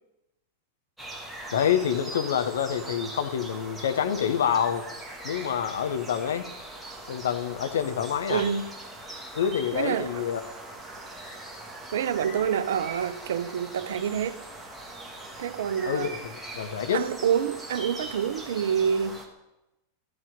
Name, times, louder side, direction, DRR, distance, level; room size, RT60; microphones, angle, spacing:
sound 1, 1.0-19.3, right 1 dB, ahead, 1.5 m, -41 dB
voice 1, 1.5-4.9 5.2-6.5 7.1-8.4 9.3-10.4 15.8-17.0, left 8 dB, 60° left, 0.7 m, -27 dB
voice 2, 8.3-8.7 9.7-10.3 11.9-14.4 15.4-16.2 16.9-19.2, right 8 dB, 60° right, 0.5 m, -27 dB
13.5 x 4.9 x 5.1 m
figure-of-eight pair, 90°, 0 cm